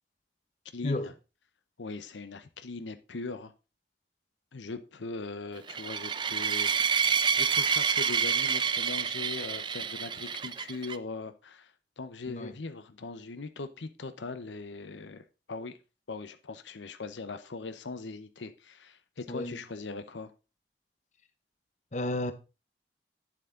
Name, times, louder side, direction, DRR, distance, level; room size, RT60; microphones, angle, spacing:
voice 1, 0.7-1.1 1.8-3.5 4.5-7.1 7.4-15.8 16.1-20.3, left 3 dB, 90° left, 0.8 m, -40 dB
sound 1, 5.7-11.0, right 6 dB, 25° right, 0.4 m, -28 dB
voice 2, 19.3-19.6 21.9-22.3, left 2 dB, 40° left, 0.9 m, -32 dB
9.5 x 7.4 x 3.7 m
head